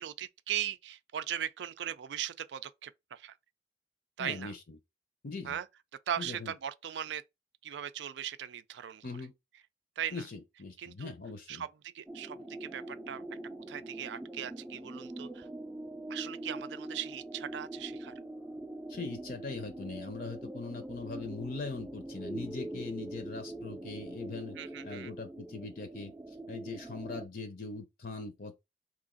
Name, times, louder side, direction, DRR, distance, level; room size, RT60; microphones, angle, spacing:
voice 1, 0.0-3.3 4.2-4.5 5.4-5.7 6.1-7.2 7.6-9.1 10.0-10.2 10.8-11.1 11.5-11.7 11.9-13.2 13.7-15.5 16.1-18.1 24.6-25.1, right 10 dB, 75° right, 0.3 m, -38 dB
voice 2, 4.2-4.6 5.2-5.6 6.2-6.5 9.0-9.3 10.1-11.6 18.9-24.6 24.8-26.1 26.5-28.6, left 3 dB, 55° left, 0.6 m, -41 dB
sound 1, 12.1-27.3, right 1 dB, 10° right, 0.4 m, -43 dB
2.9 x 2.5 x 3.7 m
head